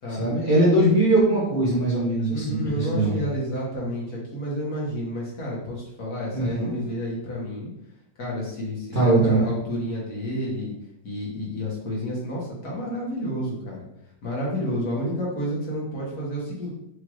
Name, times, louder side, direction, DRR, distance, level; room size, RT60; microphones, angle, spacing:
voice 1, 0.2-3.1 6.3-6.7 8.9-9.5, right 2 dB, 35° right, -9 dB, 0.9 m, -21 dB
voice 2, 2.3-7.7 8.2-10.7 11.0-13.8 14.2-16.7, equal, 50° left, -5 dB, 1.7 m, -30 dB
5.0 x 2.8 x 3.0 m, 0.78 s
omnidirectional pair, 2.2 m